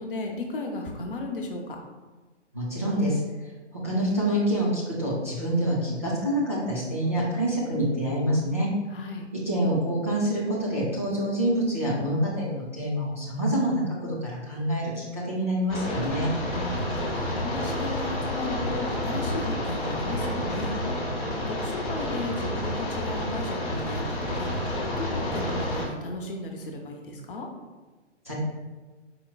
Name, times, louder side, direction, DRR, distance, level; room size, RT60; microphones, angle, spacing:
voice 1, 0.0-1.8 8.9-9.2 16.5-20.7 21.1-21.2 21.5-27.5, left 2 dB, 50° left, 1 dB, 0.7 m, -35 dB
voice 2, 2.5-3.2 3.8-8.7 9.3-16.3 28.2-28.3, equal, 15° right, -9 dB, 0.3 m, -26 dB
sound 1, 15.7-25.9, left 1 dB, 15° left, 0.8 m, -29 dB
5.0 x 4.3 x 2.3 m, 1.3 s
figure-of-eight pair, 125°, 36 cm